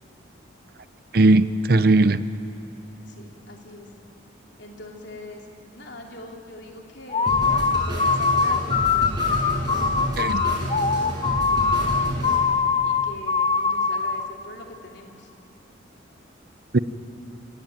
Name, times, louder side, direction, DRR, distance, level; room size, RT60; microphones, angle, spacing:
voice 1, 1.1-2.2 10.2-10.4 16.7-16.8, right 2 dB, 50° right, 14 dB, 0.7 m, -18 dB
voice 2, 3.1-3.9 4.6-5.5 5.7-9.9 10.2-11.1 11.5-12.3 12.8-15.3, left 2 dB, 65° left, 1 dB, 3.0 m, -42 dB
sound 1, 7.1-14.3, left 5 dB, 30° left, 0.6 m, -22 dB
sound 2, 7.3-12.4, equal, 20° right, 6.7 m, -29 dB
28.5 x 17.0 x 9.0 m, 2.9 s
head